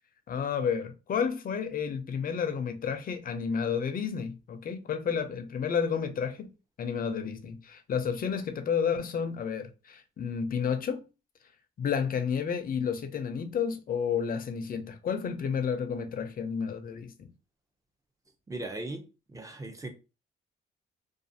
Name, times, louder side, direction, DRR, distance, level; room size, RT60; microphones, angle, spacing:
voice 1, 0.3-6.5 6.8-11.0 11.8-17.3, left 7 dB, 45° left, 0.5 m, -31 dB
voice 2, 18.5-19.9, right 2 dB, 15° right, 0.6 m, -38 dB
2.5 x 2.4 x 2.6 m
cardioid pair, 90°, 20 cm